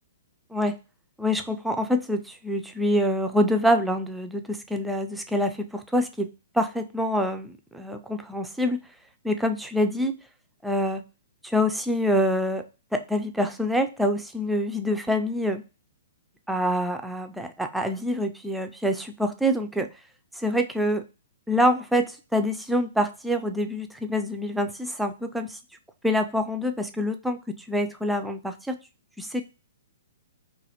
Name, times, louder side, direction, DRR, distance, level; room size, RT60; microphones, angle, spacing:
voice 1, 1.2-8.8 9.2-10.2 10.6-11.0 11.4-12.7 12.9-15.6 16.5-19.9 20.3-21.1 21.5-25.6 26.0-28.8 29.2-29.4, equal, 5° right, 6 dB, 0.4 m, -26 dB
3.8 x 2.7 x 2.9 m, 0.30 s
figure-of-eight pair, 115°, 0 cm